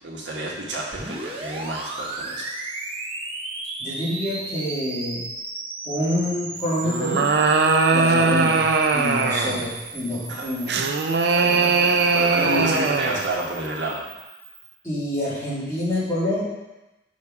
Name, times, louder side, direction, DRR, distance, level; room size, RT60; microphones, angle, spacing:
voice 1, 0.0-2.5 10.3-10.5 11.3-14.1, right 2 dB, 85° right, -3 dB, 1.3 m, -30 dB
sound 1, 0.9-14.8, right 2 dB, 30° right, 0.7 m, -36 dB
voice 2, 3.8-5.2 5.9-7.3 7.9-8.6 8.9-10.7 12.4-12.9 14.8-16.4, left 1 dB, 15° left, -10 dB, 2.2 m, -27 dB
sound 2, 6.8-9.7 10.7-13.3, right 4 dB, 65° right, 0.5 m, -20 dB
5.5 x 5.0 x 4.7 m, 1.0 s
head